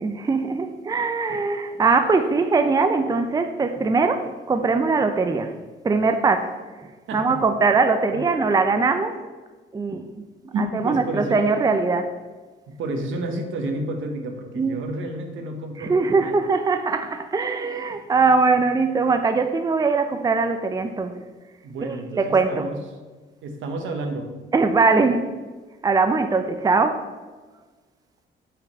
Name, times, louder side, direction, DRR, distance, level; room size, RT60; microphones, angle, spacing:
voice 1, 0.0-5.5 5.8-6.5 6.8-9.2 9.7-10.2 10.8-12.1 14.6-14.8 15.8-21.2 21.8-22.7 24.5-25.3 25.8-27.0, right 4 dB, 20° right, 7 dB, 0.5 m, -21 dB
voice 2, 7.1-7.4 8.1-8.2 10.5-11.4 12.7-16.4 21.6-22.8 23.4-24.3, right 2 dB, 80° right, 4 dB, 1.1 m, -30 dB
5.6 x 5.1 x 5.2 m, 1.3 s
cardioid pair, 90°, 20 cm